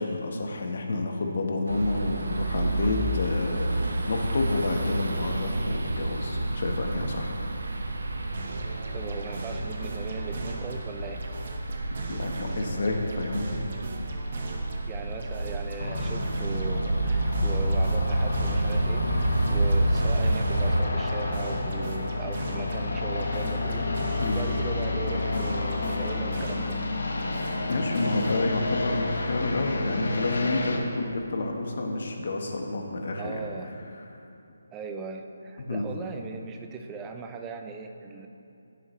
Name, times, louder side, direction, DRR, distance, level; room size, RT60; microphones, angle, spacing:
voice 1, 0.0-7.3 12.1-13.7 24.2-24.4 27.7-33.4 35.6-35.9, left 2 dB, 45° left, 2 dB, 1.2 m, -29 dB
sound 1, 1.7-20.8, right 1 dB, 90° right, 1.1 m, -29 dB
sound 2, 8.3-10.9 11.2-14.9 15.2-18.9 19.2-22.9 23.2-26.9 27.2-28.3, right 2 dB, 35° right, 1.0 m, -39 dB
voice 2, 8.9-11.2 14.9-26.8 33.2-33.7 34.7-38.3, right 5 dB, 10° right, 5 dB, 0.4 m, -38 dB
sound 3, 15.8-30.8, left 2 dB, 75° left, 1.5 m, -30 dB
16.0 x 7.3 x 3.1 m, 2.7 s
hypercardioid pair, 175°, 0 cm